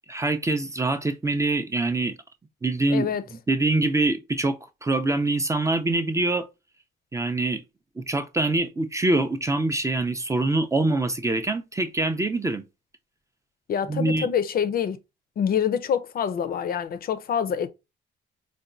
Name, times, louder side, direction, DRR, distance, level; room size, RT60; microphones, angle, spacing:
voice 1, 0.1-2.1 2.6-3.1 3.5-6.5 7.1-7.6 8.0-12.6 13.9-14.3, right 2 dB, 15° right, 0.4 m, -24 dB
voice 2, 2.9-3.2 13.7-15.0 15.4-17.7, left 8 dB, 50° left, 0.4 m, -26 dB
4.0 x 2.2 x 2.4 m
cardioid pair, 90°, 20 cm